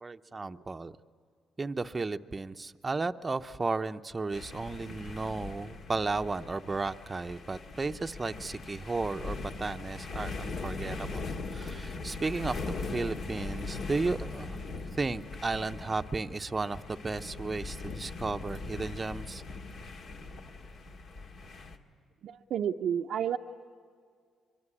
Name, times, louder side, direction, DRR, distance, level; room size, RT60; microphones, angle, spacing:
voice 1, 0.0-0.9 1.6-11.2 11.5-14.6 15.0-19.4, right 3 dB, 25° right, 8 dB, 0.7 m, -34 dB
sound 1, 4.3-21.8, left 3 dB, 60° left, 2.0 m, -40 dB
voice 2, 22.2-23.4, right 9 dB, 70° right, 3 dB, 0.7 m, -30 dB
25.0 x 23.0 x 9.9 m, 2.1 s
cardioid pair, 90°, 0 cm